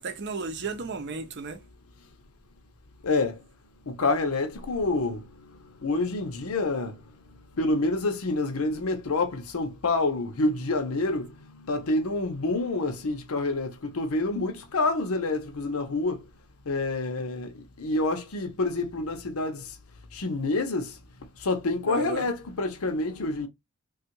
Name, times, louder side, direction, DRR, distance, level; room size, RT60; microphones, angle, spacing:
voice 1, 0.0-1.6 21.9-22.3, right 3 dB, 55° right, 0.6 m, -34 dB
voice 2, 3.0-3.4 3.9-7.0 7.6-16.3 16.7-19.8 20.1-21.0 21.4-23.5, left 2 dB, 75° left, 0.7 m, -28 dB
3.3 x 2.3 x 2.8 m
head